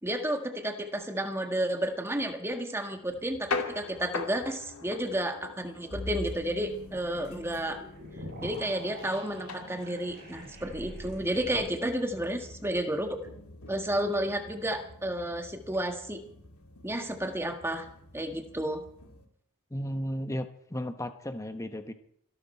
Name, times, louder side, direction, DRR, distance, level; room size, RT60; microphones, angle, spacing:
voice 1, 0.0-7.8 8.4-13.2 13.7-16.2 16.8-17.9 18.1-18.8, right 1 dB, 10° right, 5 dB, 1.6 m, -31 dB
sound 1, 3.1-19.3, left 4 dB, 90° left, 2.2 m, -43 dB
sound 2, 5.9-11.5, left 1 dB, 50° right, 6.3 m, -43 dB
voice 2, 19.7-21.9, equal, 15° left, 8 dB, 1.1 m, -34 dB
25.5 x 12.5 x 4.5 m, 0.70 s
head